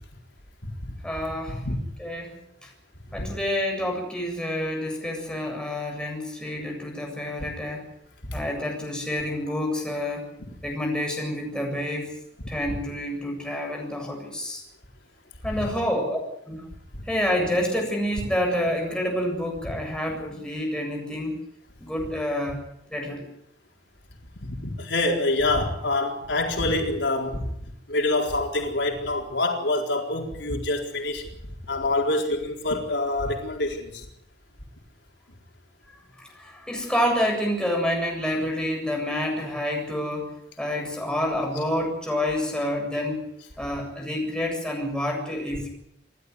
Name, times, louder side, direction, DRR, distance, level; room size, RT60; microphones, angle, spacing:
voice 1, 1.0-1.6 2.0-2.7 3.1-7.8 8.3-10.3 10.6-12.1 12.5-14.6 15.4-16.2 16.5-16.6 17.1-21.4 21.8-22.6 22.9-23.3 36.4-40.3 40.6-43.3 43.6-45.7, left 1 dB, 5° left, 7.6 m, -28 dB
voice 2, 24.4-27.4 27.9-31.2 31.7-34.0, left 2 dB, 85° left, 4.3 m, -26 dB
28.0 x 13.0 x 9.5 m
head